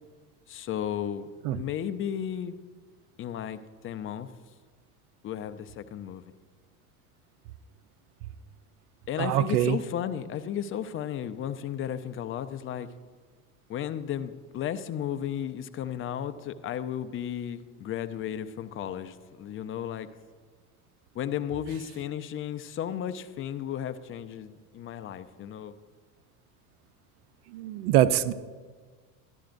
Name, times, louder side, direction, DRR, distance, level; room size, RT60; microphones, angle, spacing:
voice 1, 0.5-2.6 3.2-3.6 3.8-4.3 5.2-6.2 9.1-12.9 13.7-20.1 21.1-25.7, left 9 dB, 30° left, 11 dB, 0.5 m, -34 dB
voice 2, 9.2-9.8 27.5-28.3, right 12 dB, 70° right, 14 dB, 0.6 m, -23 dB
13.0 x 11.5 x 2.6 m, 1.5 s
hypercardioid pair, 90°, 46 cm